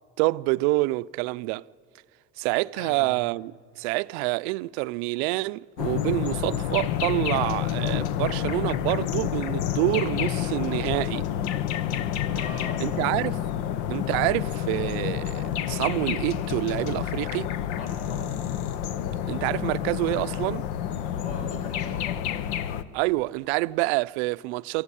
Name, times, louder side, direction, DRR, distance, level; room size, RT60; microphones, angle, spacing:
voice 1, 0.2-1.6 2.4-11.3 12.8-13.4 13.9-17.5 19.3-20.6 22.9-24.8, right 22 dB, 80° right, 0.5 m, -27 dB
voice 2, 2.7-3.2 12.3-13.2 17.7-18.4 21.0-22.2, left 3 dB, 45° left, 6.8 m, -40 dB
sound 1, 5.8-22.8, left 10 dB, 90° left, 1.0 m, -29 dB
28.5 x 14.0 x 9.8 m
cardioid pair, 165°, 32 cm